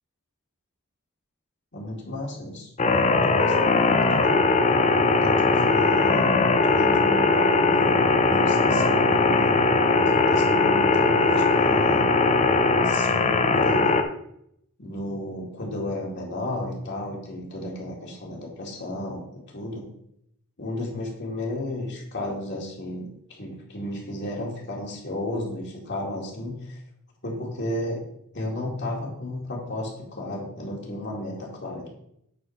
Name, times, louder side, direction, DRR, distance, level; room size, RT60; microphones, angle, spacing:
voice 1, 1.7-2.7 3.0-3.7 4.1-4.5 5.2-6.3 6.6-9.6 9.9-12.1 12.8-13.8 14.8-19.9 20.6-26.8 27.2-28.0 28.3-31.9, left 1 dB, 55° left, -2 dB, 2.4 m, -33 dB
sound 1, 2.8-14.0, left 3 dB, 30° left, 0.6 m, -20 dB
8.7 x 4.3 x 5.8 m, 0.75 s
head